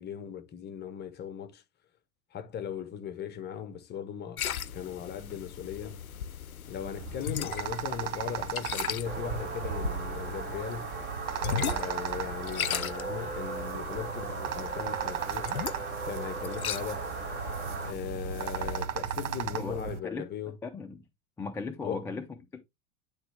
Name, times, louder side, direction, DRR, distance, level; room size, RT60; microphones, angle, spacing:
voice 1, 0.0-1.6 2.3-4.4 4.7-6.0 6.7-11.0 11.4-15.6 16.0-17.1 17.8-20.6 21.8-22.1, left 8 dB, 25° left, 0.9 m, -38 dB
sound 1, 4.4-18.9, left 8 dB, 90° left, 0.5 m, -38 dB
sound 2, 6.8-20.0, right 9 dB, 60° right, 0.9 m, -37 dB
sound 3, 9.0-17.9, right 4 dB, 25° right, 1.9 m, -38 dB
voice 2, 19.5-20.2 20.6-21.0 21.4-22.2 22.5-22.6, left 4 dB, 5° left, 0.4 m, -37 dB
9.4 x 3.5 x 3.3 m
figure-of-eight pair, 90°, 41 cm